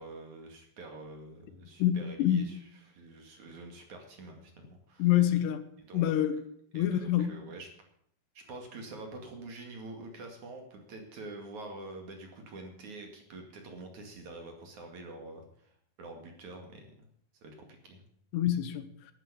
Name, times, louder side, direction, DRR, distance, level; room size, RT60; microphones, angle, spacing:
voice 1, 0.0-5.1 5.9-6.1 6.7-7.7 8.3-16.9 17.4-18.0, right 2 dB, 50° right, 3.2 m, -46 dB
voice 2, 1.8-2.5 5.0-5.6 5.9-6.4 6.7-7.3 18.3-18.9, left 11 dB, 80° left, 3.2 m, -26 dB
12.0 x 10.0 x 8.4 m
omnidirectional pair, 4.9 m